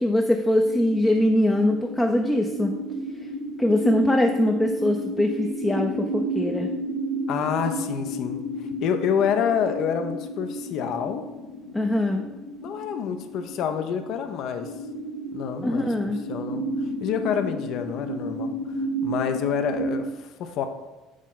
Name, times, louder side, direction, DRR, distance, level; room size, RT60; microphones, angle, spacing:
voice 1, 0.0-2.7 3.6-6.7 11.7-12.2 15.6-16.2, left 1 dB, 5° left, 2 dB, 0.5 m, -22 dB
sound 1, 0.6-20.0, right 1 dB, 85° left, 0.9 m, -32 dB
voice 2, 7.3-11.3 12.6-14.7 15.3-15.9 16.3-20.7, left 7 dB, 50° left, 8 dB, 0.5 m, -28 dB
6.3 x 4.0 x 3.8 m, 1.1 s
figure-of-eight pair, 60°, 0 cm